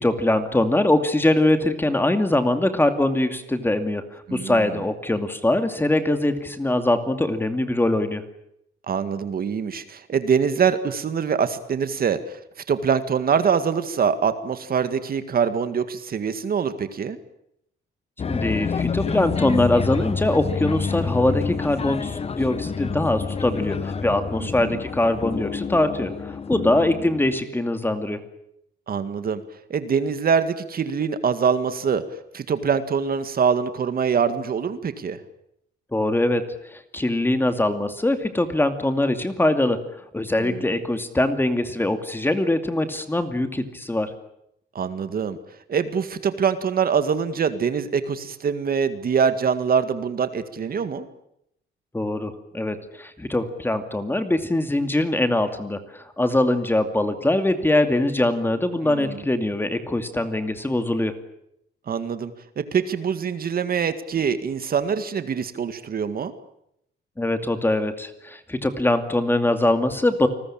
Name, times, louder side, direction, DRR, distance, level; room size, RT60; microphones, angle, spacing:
voice 1, 0.0-4.0 4.3-8.2 18.3-28.2 35.9-36.4 36.9-39.8 40.1-44.1 51.9-61.1 67.2-70.3, left 1 dB, 10° left, 8 dB, 2.5 m, -22 dB
voice 2, 4.3-4.8 8.9-12.4 12.7-17.2 24.4-24.8 28.9-29.4 29.7-32.0 32.3-35.2 40.4-40.6 44.8-45.4 45.7-51.1 58.8-59.2 61.9-66.3, right 6 dB, 50° right, 10 dB, 2.0 m, -24 dB
sound 1, 18.2-27.4, left 5 dB, 30° left, 1.1 m, -28 dB
29.0 x 20.5 x 8.8 m, 0.77 s
cardioid pair, 150°, 20 cm